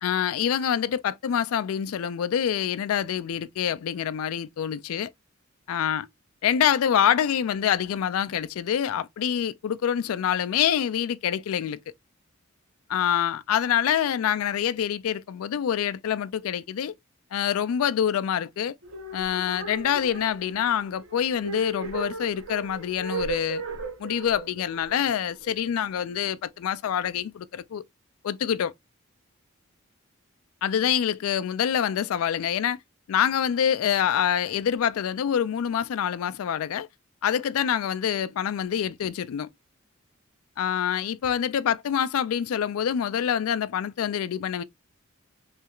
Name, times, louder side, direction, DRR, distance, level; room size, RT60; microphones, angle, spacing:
voice 1, 0.0-5.1 5.7-6.1 6.4-11.8 12.9-16.9 17.3-18.7 19.1-23.6 24.0-27.8 28.2-28.7 30.6-32.8 33.1-36.9 37.2-39.5 40.6-44.6, left 9 dB, 85° left, 0.3 m, -26 dB
sound 1, 18.8-26.0, right 4 dB, 65° right, 0.8 m, -37 dB
3.2 x 2.4 x 2.9 m
head